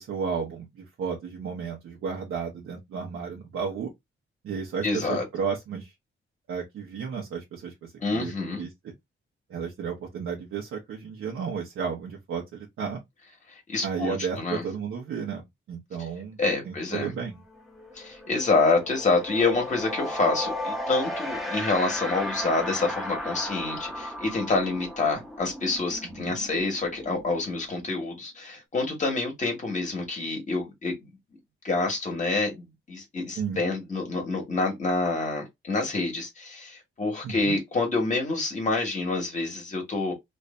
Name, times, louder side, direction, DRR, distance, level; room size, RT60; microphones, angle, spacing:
voice 1, 0.0-3.9 4.4-5.9 6.5-8.9 9.5-13.0 13.8-16.4 16.6-17.4 26.1-26.4 33.4-33.6 37.2-37.6, right 6 dB, 90° right, 1.0 m, -33 dB
voice 2, 4.8-5.2 8.0-8.6 13.5-14.6 16.4-17.1 17.9-31.1 31.6-40.1, left 3 dB, 35° left, 1.5 m, -27 dB
sound 1, 17.0-17.2 17.5-28.0, left 1 dB, ahead, 0.9 m, -35 dB
3.2 x 2.6 x 3.2 m
wide cardioid pair, 160°, 21 cm